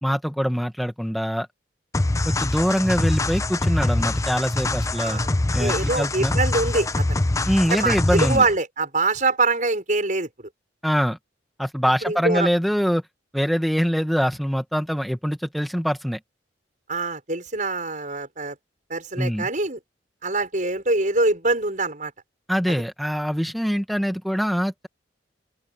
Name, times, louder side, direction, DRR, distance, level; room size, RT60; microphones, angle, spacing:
voice 1, 0.0-1.5 2.2-5.2 5.5-6.3 7.5-8.4 10.8-11.2 11.6-13.0 13.3-16.2 19.2-19.5 22.5-24.9, equal, ahead, 1.0 m, -23 dB
sound 1, 1.9-8.5, left 2 dB, 20° left, 0.5 m, -24 dB
voice 2, 5.0-5.3 5.6-7.2 7.7-10.5 12.0-12.5 16.9-18.6 18.9-19.8 20.2-22.1 22.7-22.8, right 3 dB, 45° right, 5.8 m, -24 dB
open air
head